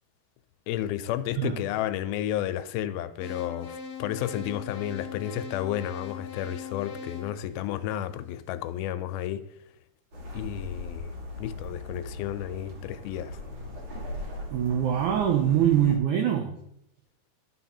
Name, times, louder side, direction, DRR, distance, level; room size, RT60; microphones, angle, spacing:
voice 1, 0.7-9.4 10.3-11.1 11.4-13.4, left 12 dB, 85° left, 2.3 m, -32 dB
sound 1, 3.2-8.3, left 6 dB, 55° left, 1.8 m, -40 dB
sound 2, 10.1-16.0, left 1 dB, 45° right, 1.6 m, -39 dB
voice 2, 14.5-16.6, right 10 dB, 75° right, 1.8 m, -24 dB
12.0 x 4.1 x 4.3 m
omnidirectional pair, 4.2 m